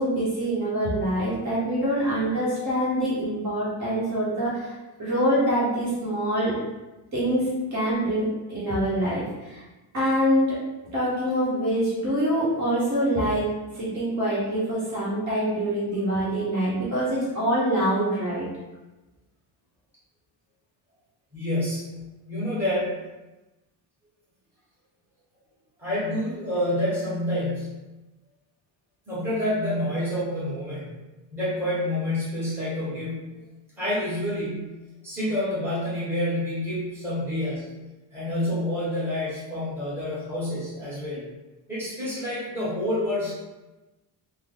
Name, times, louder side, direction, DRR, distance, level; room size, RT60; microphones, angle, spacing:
voice 1, 0.0-4.7 5.0-6.6 7.1-9.6 9.9-10.6 10.9-13.4 13.7-18.5, equal, 40° right, -8 dB, 1.2 m, -25 dB
voice 2, 21.3-22.0 22.3-23.0 25.8-27.8 29.1-30.9 31.3-33.4 33.8-37.7 38.1-41.2 41.7-43.3, left 1 dB, 5° right, -10 dB, 1.2 m, -28 dB
3.4 x 2.1 x 3.8 m, 1.1 s
cardioid pair, 165°, 43 cm